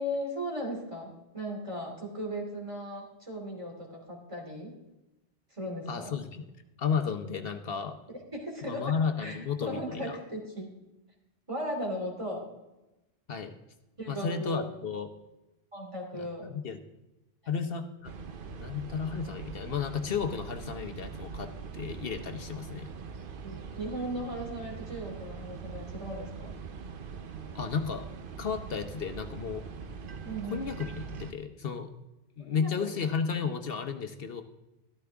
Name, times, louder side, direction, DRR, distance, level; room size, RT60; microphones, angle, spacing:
voice 1, 0.0-4.8 5.5-6.1 8.1-8.9 9.2-10.7 11.5-12.5 14.0-14.7 15.7-16.5 23.4-26.5 30.2-30.7 32.4-32.7, equal, 30° right, 0 dB, 2.7 m, -37 dB
voice 2, 5.9-6.5 6.8-8.0 8.6-10.2 13.3-13.5 14.1-15.1 16.2-16.8 17.5-18.1 18.5-22.9 27.5-28.1 28.4-29.6 30.5-30.9 31.2-31.9 32.4-34.4, left 6 dB, 70° left, 7 dB, 1.0 m, -33 dB
sound 1, 18.0-31.3, right 5 dB, 60° right, 0.9 m, -42 dB
13.5 x 12.5 x 3.5 m, 0.99 s
omnidirectional pair, 1.0 m